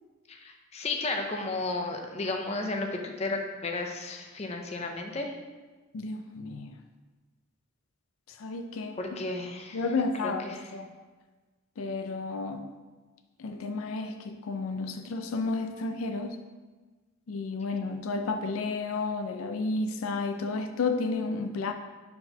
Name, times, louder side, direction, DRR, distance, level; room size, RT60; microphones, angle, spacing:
voice 1, 0.3-5.3 9.0-9.8 10.2-10.7, left 2 dB, 30° left, 3 dB, 0.6 m, -33 dB
voice 2, 5.9-6.7 8.4-9.0 9.7-10.9 11.8-12.7 13.4-16.4 17.3-21.7, left 3 dB, 85° left, 6 dB, 0.4 m, -32 dB
4.3 x 4.1 x 5.4 m, 1.3 s
head